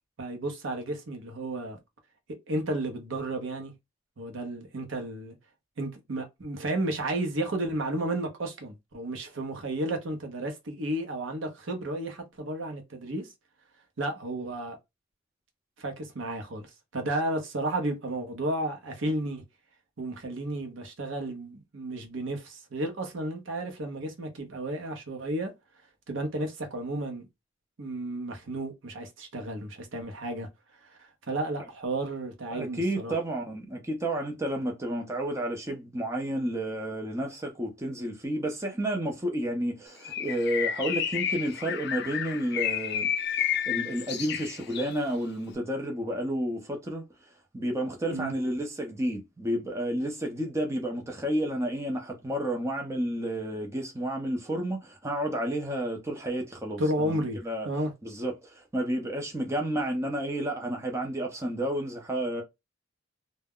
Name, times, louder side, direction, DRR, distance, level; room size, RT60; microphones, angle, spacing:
voice 1, 0.2-1.8 2.3-3.7 4.2-5.4 5.8-13.3 14.0-14.8 15.8-19.4 20.0-25.5 26.1-27.3 27.8-30.5 31.0-33.2 48.1-48.3 56.8-57.4 57.6-57.9, right 1 dB, 75° right, 0.7 m, -32 dB
voice 2, 32.5-43.1 43.4-47.3 47.5-57.7 58.0-62.4, right 1 dB, 15° right, 0.5 m, -31 dB
Bird, 40.0-45.0, left 9 dB, 55° left, 0.4 m, -31 dB
2.2 x 2.1 x 3.5 m
head